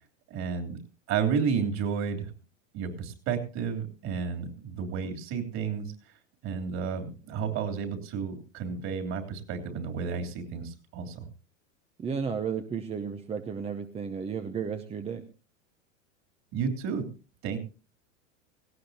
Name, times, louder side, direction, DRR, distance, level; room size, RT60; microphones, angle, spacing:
voice 1, 0.3-0.8 1.1-2.3 2.7-5.9 6.4-11.3 16.5-17.1 17.4-17.6, right 6 dB, 45° right, 4 dB, 3.2 m, -31 dB
voice 2, 12.0-15.2, right 6 dB, 15° right, 7 dB, 0.8 m, -33 dB
18.0 x 16.5 x 2.8 m, 0.34 s
hypercardioid pair, 105°, 38 cm